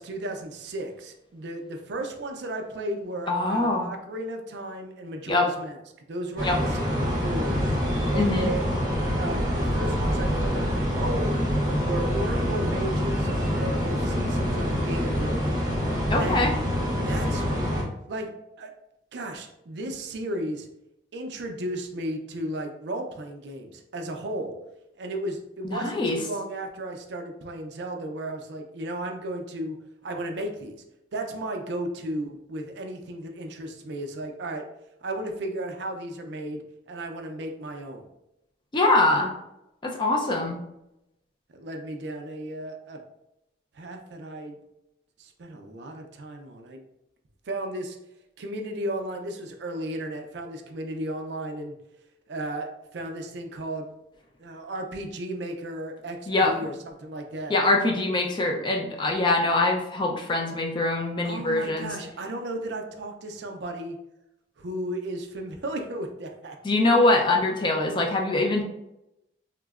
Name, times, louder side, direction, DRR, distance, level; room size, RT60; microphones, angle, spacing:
voice 1, 0.0-5.8 6.1-7.6 8.1-8.7 9.1-11.4 11.8-15.4 16.1-16.4 17.0-17.5 18.1-18.3 18.6-18.7 19.1-20.7 21.1-24.6 25.0-29.8 30.0-30.8 31.1-34.6 35.0-38.1 41.5-43.0 43.7-44.6 45.2-46.8 47.5-48.0 48.4-51.8 52.3-53.9 54.4-57.5 61.2-64.0 64.6-66.6, right 1 dB, 60° right, 4 dB, 0.4 m, -34 dB
voice 2, 3.3-3.9 5.3-5.5 6.4-6.6 8.1-8.5 16.1-16.6 25.6-26.2 38.7-39.3 39.8-40.6 56.3-56.5 57.5-61.9 66.6-68.6, left 2 dB, 25° left, 1 dB, 0.3 m, -23 dB
sound 1, 6.4-17.8, equal, 20° right, 0.7 m, -26 dB
3.7 x 2.0 x 2.3 m, 0.86 s
head